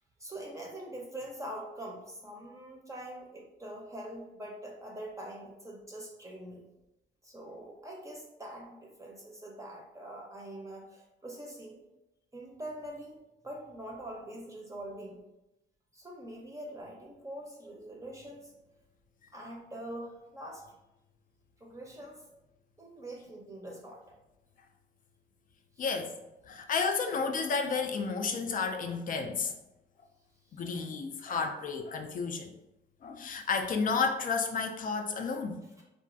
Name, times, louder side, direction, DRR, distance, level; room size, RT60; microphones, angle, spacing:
voice 1, 0.2-6.6 7.2-11.8 12.3-13.2 13.4-15.2 15.9-18.5 19.3-20.7 21.6-22.2 22.8-24.0 25.8-25.9, right 1 dB, 15° right, -2 dB, 0.6 m, -44 dB
voice 2, 25.8-26.2 26.5-29.5 30.5-32.5 33.0-35.6, left 5 dB, 45° left, 5 dB, 0.4 m, -32 dB
2.9 x 2.3 x 2.6 m, 0.93 s
cardioid pair, 90°, 20 cm